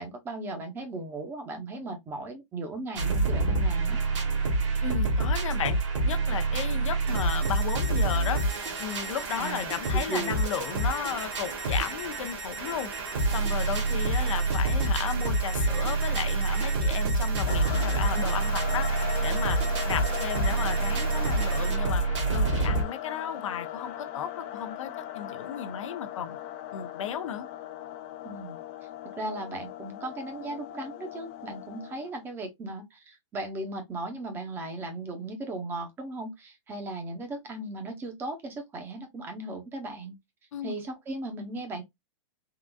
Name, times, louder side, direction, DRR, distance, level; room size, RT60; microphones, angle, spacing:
voice 1, 0.0-4.0 9.4-9.8 10.1-10.4 28.2-28.6 29.2-40.2 40.6-41.8, right 2 dB, 15° right, 0.7 m, -37 dB
sound 1, 3.0-22.8, right 3 dB, 65° right, 1.2 m, -27 dB
voice 2, 4.8-5.8 6.0-8.4 8.8-12.9 13.3-18.9 19.2-22.0 22.3-26.4 26.7-27.5 40.5-40.8, left 8 dB, 75° left, 0.6 m, -34 dB
sound 2, 7.1-21.7, right 2 dB, 50° right, 0.9 m, -40 dB
sound 3, 17.5-32.2, left 12 dB, 25° left, 0.4 m, -38 dB
3.7 x 2.4 x 2.2 m
hypercardioid pair, 155°, 16 cm